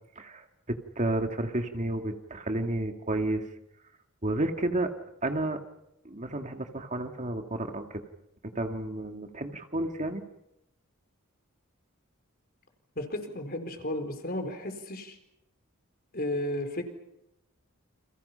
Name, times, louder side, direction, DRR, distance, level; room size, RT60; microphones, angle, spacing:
voice 1, 0.2-3.4 4.2-4.9 5.2-5.6 6.0-8.0 8.4-10.2, right 1 dB, 35° right, 5 dB, 2.2 m, -31 dB
voice 2, 13.0-15.2 16.1-16.8, left 1 dB, 45° left, 7 dB, 4.3 m, -33 dB
30.0 x 28.0 x 5.8 m, 0.84 s
head